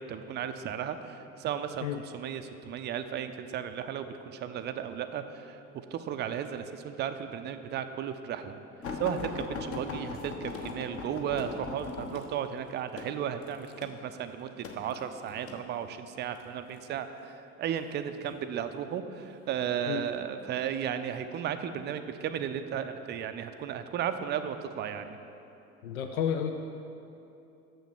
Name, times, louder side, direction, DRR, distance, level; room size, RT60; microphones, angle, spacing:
voice 1, 0.0-5.6 5.9-8.5 9.0-25.2, right 9 dB, 25° right, 9 dB, 0.4 m, -35 dB
sound 1, 8.8-15.6 16.4-16.8 17.8-18.4 19.2-19.3 19.7-19.8, left 3 dB, 30° left, 0.9 m, -39 dB
voice 2, 25.8-26.5, left 8 dB, 70° left, 6 dB, 0.6 m, -30 dB
6.6 x 6.4 x 6.3 m, 2.9 s
figure-of-eight pair, 65°, 43 cm